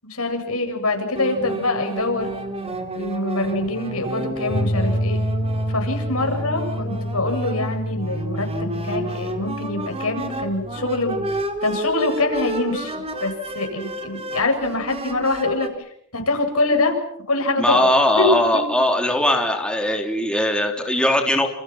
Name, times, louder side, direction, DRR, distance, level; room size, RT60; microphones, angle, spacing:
voice 1, 0.0-2.3 2.9-5.2 5.7-15.7 16.1-17.0 17.3-17.9 18.1-18.3, left 2 dB, 80° left, 4 dB, 7.6 m, -24 dB
sound 1, 1.2-15.7, right 1 dB, 30° right, 3.9 m, -31 dB
sound 2, 4.5-11.4, equal, 50° left, 7.7 m, -28 dB
voice 2, 17.6-21.5, left 1 dB, 5° left, 2 dB, 3.5 m, -20 dB
29.0 x 28.0 x 6.0 m, 0.71 s
head